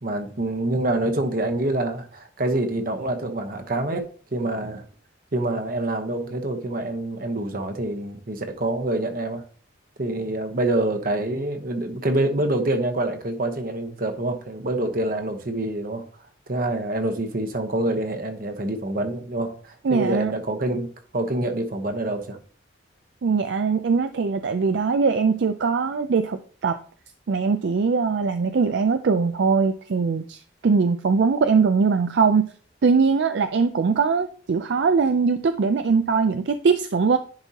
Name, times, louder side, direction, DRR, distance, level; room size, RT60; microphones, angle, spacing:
voice 1, 0.0-4.8 5.3-9.4 10.0-16.1 16.5-22.4, right 1 dB, 50° right, 1.0 m, -26 dB
voice 2, 19.8-20.3 23.2-26.8 27.3-32.4 32.8-37.2, right 5 dB, 65° right, 0.4 m, -21 dB
10.5 x 4.4 x 2.9 m
head